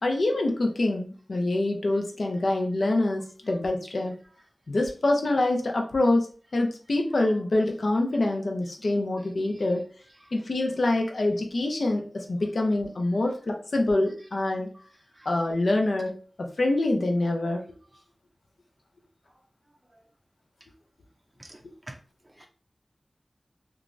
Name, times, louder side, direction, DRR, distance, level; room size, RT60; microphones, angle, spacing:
voice 1, 0.0-4.1 4.7-6.3 6.5-9.8 10.3-14.7 15.3-17.6 21.6-21.7, left 2 dB, 85° left, 2 dB, 0.5 m, -25 dB
voice 2, 14.7-14.9 15.1-15.3 21.4-21.6 21.9-22.0 22.4-22.5, right 1 dB, 30° right, 2 dB, 0.4 m, -45 dB
3.0 x 2.3 x 2.5 m, 0.39 s
wide cardioid pair, 50°, 0 cm